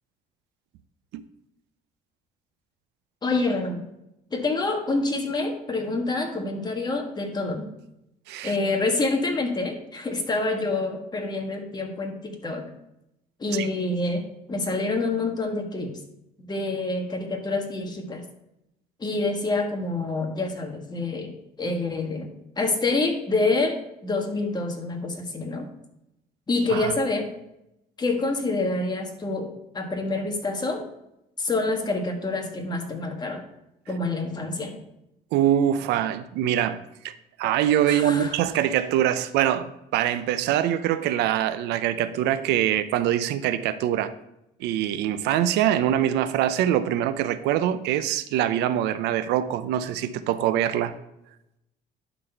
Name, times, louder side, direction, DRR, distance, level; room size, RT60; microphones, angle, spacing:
voice 1, 3.2-3.8 4.3-7.7 8.4-12.7 13.4-16.0 16.5-18.2 19.0-22.3 22.6-25.7 26.5-27.3 28.0-30.8 31.4-33.4 33.9-34.8 37.9-38.4, left 3 dB, 25° left, 1.4 m, -27 dB
voice 2, 35.3-44.1 44.6-50.9, right 11 dB, 85° right, 0.5 m, -24 dB
11.0 x 4.1 x 4.5 m
cardioid pair, 110°, 17 cm